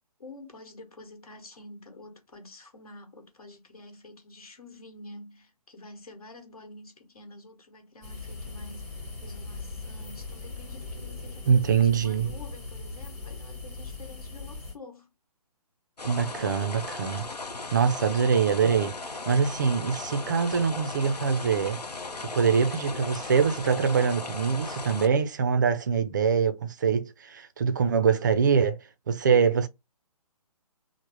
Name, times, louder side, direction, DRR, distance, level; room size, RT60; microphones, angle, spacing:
voice 1, 0.2-15.1, left 2 dB, 65° left, 1.3 m, -48 dB
sound 1, 8.0-14.8, left 3 dB, 10° left, 0.8 m, -39 dB
voice 2, 11.5-12.3 16.0-17.3 17.7-18.9 19.3-21.8 22.3-28.8 29.1-29.7, right 6 dB, 30° right, 0.4 m, -24 dB
sound 2, 16.0-25.1, left 3 dB, 85° left, 0.6 m, -37 dB
3.4 x 2.0 x 2.9 m
figure-of-eight pair, 140°, 20 cm